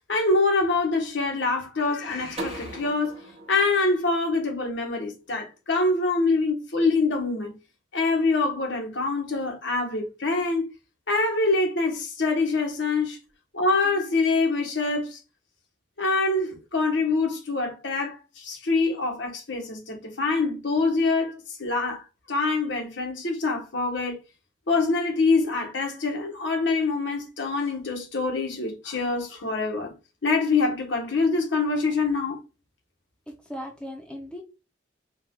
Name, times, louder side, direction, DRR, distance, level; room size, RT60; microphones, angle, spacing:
voice 1, 0.1-3.2 3.5-7.5 7.9-10.7 11.1-13.2 13.5-15.2 16.0-24.2 24.7-29.9 30.2-32.4, left 3 dB, 75° left, 1.4 m, -25 dB
sound 1, 2.4-5.2, right 1 dB, 35° right, 1.0 m, -40 dB
voice 2, 33.3-34.4, equal, 5° left, 0.8 m, -38 dB
4.6 x 2.6 x 3.8 m
head